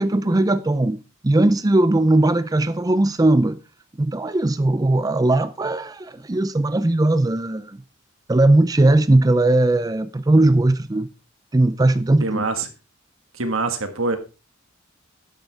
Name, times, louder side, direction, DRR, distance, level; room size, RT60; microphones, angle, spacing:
voice 1, 0.0-3.6 4.0-7.8 8.3-11.1 11.5-12.4, right 2 dB, 20° right, 0.4 m, -18 dB
voice 2, 12.2-12.7 13.4-14.2, right 3 dB, 80° right, 1.8 m, -24 dB
12.0 x 9.3 x 3.6 m
head